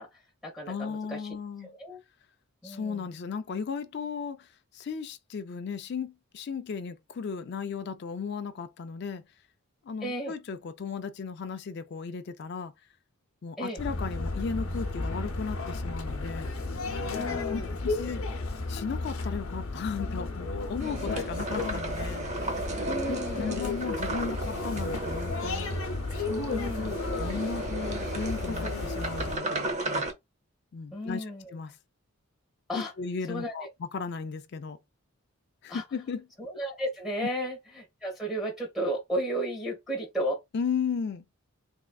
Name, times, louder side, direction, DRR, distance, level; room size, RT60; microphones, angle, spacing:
voice 1, 0.0-1.4 1.8-2.0 2.6-3.1 10.0-10.3 13.6-13.8 17.1-17.8 22.8-23.7 26.5-27.0 30.9-31.5 32.7-32.9 33.3-33.7 35.7-35.8 36.4-40.4, right 1 dB, ahead, 1.5 m, -34 dB
voice 2, 0.7-1.7 2.6-4.5 4.7-9.2 9.8-12.7 13.4-16.5 17.3-18.2 18.7-22.3 23.3-25.8 27.2-30.0 30.7-31.7 32.7-34.8 35.6-36.3 40.5-41.2, left 5 dB, 50° left, 0.3 m, -35 dB
sound 1, 13.8-29.4, left 3 dB, 70° left, 0.8 m, -33 dB
sound 2, 20.8-30.1, right 2 dB, 30° right, 0.7 m, -35 dB
3.7 x 3.1 x 2.3 m
head